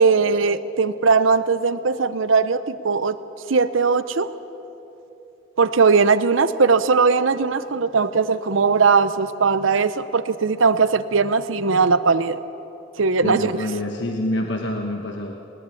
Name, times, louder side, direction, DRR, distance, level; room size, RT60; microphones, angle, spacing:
voice 1, 0.0-3.2 3.5-4.3 5.6-12.4 13.0-13.6, right 4 dB, 85° right, 13 dB, 0.7 m, -19 dB
voice 2, 13.2-15.3, left 1 dB, 65° left, 2 dB, 1.3 m, -26 dB
20.5 x 19.5 x 8.4 m, 2.9 s
head